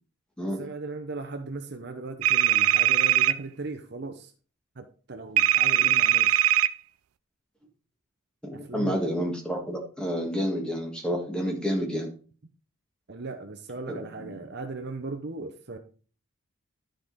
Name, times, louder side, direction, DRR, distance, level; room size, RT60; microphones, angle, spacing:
voice 1, 0.4-4.3 4.8-6.6 8.5-9.0 13.1-15.8, right 3 dB, 50° right, 6 dB, 0.8 m, -38 dB
sound 1, 2.2-3.3 5.4-6.7, right 12 dB, 80° right, 0.4 m, -21 dB
voice 2, 8.4-12.1 13.9-14.4, equal, 5° left, 0 dB, 1.7 m, -30 dB
11.0 x 5.2 x 3.9 m, 0.39 s
head